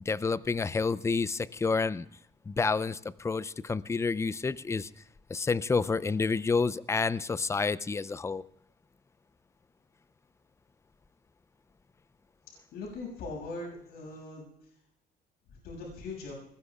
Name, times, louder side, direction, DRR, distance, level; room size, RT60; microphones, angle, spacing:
voice 1, 0.1-2.1 2.5-4.9 5.3-8.4, left 4 dB, 15° left, 17 dB, 0.5 m, -29 dB
voice 2, 12.7-14.5 15.5-16.3, left 3 dB, 75° left, -1 dB, 6.7 m, -40 dB
24.5 x 20.5 x 2.4 m, 0.77 s
cardioid pair, 110°, 17 cm